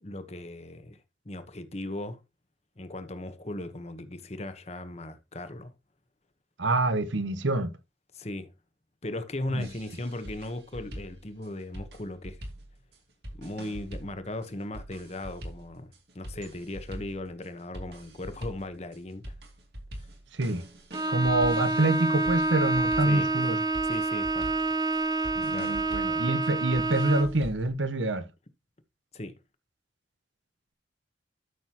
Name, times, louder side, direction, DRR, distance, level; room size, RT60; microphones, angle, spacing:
voice 1, 0.0-2.2 2.8-5.7 8.1-8.5 9.0-12.4 13.3-19.3 20.0-20.1 23.1-23.3 23.8-24.5 25.5-25.8 29.1-29.3, left 1 dB, 35° left, 1.1 m, -37 dB
voice 2, 6.6-7.7 9.5-9.7 20.3-20.7 21.1-23.6 25.3-28.3, right 2 dB, 75° right, 1.1 m, -26 dB
sound 1, 9.6-27.7, equal, 55° right, 2.5 m, -44 dB
Bowed string instrument, 20.9-27.4, right 2 dB, 20° right, 0.6 m, -28 dB
13.0 x 6.4 x 2.9 m
head